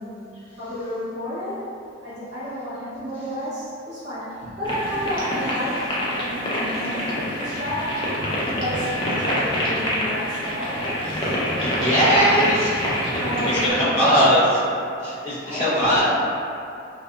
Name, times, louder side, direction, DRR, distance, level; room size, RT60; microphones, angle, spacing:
voice 1, 0.0-1.7 2.0-7.9 8.4-11.3 11.7-12.7 13.2-14.4 15.5-16.1, equal, 55° right, -12 dB, 1.0 m, -30 dB
sound 1, 4.6-13.7, equal, 25° left, 0.4 m, -26 dB
sound 2, 7.2-14.3, left 1 dB, 5° left, 0.8 m, -36 dB
voice 2, 11.3-14.4 15.0-16.1, equal, 35° right, -13 dB, 0.7 m, -21 dB
2.6 x 2.4 x 2.3 m, 2.6 s
head